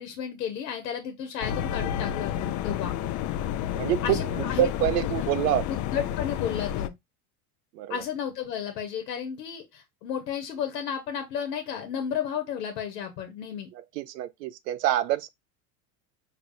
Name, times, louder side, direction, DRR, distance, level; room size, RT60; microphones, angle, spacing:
voice 1, 0.0-2.9 3.7-4.7 5.7-6.9 7.9-13.7, left 8 dB, 85° left, 1.2 m, -33 dB
sound 1, 1.4-6.9, left 10 dB, 40° left, 0.4 m, -30 dB
voice 2, 3.8-5.7 7.8-8.0 14.0-15.3, right 12 dB, 85° right, 0.5 m, -26 dB
5.0 x 3.1 x 2.6 m
hypercardioid pair, 95°, 48 cm